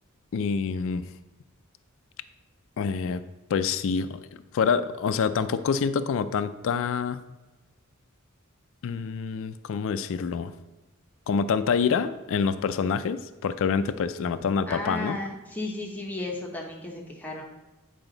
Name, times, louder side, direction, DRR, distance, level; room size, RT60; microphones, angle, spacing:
voice 1, 0.3-1.1 2.8-3.2 3.5-4.2 4.5-7.2 8.8-10.5 11.3-15.2, left 6 dB, 65° left, 11 dB, 0.3 m, -26 dB
voice 2, 14.7-17.4, left 2 dB, 10° left, -1 dB, 0.8 m, -34 dB
8.9 x 4.9 x 3.9 m, 1.1 s
head